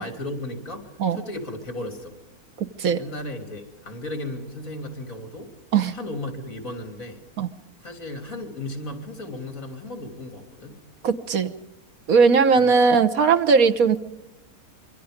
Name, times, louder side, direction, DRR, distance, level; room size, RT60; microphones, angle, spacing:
voice 1, 0.0-2.2 3.0-5.5 5.9-7.2 7.8-10.8 12.6-12.7, left 1 dB, 65° left, 6 dB, 3.6 m, -35 dB
voice 2, 2.6-3.0 5.7-6.0 7.4-7.5 11.0-11.5 12.1-14.0, right 5 dB, 75° right, 8 dB, 1.6 m, -19 dB
26.0 x 24.0 x 5.1 m, 0.89 s
omnidirectional pair, 1.5 m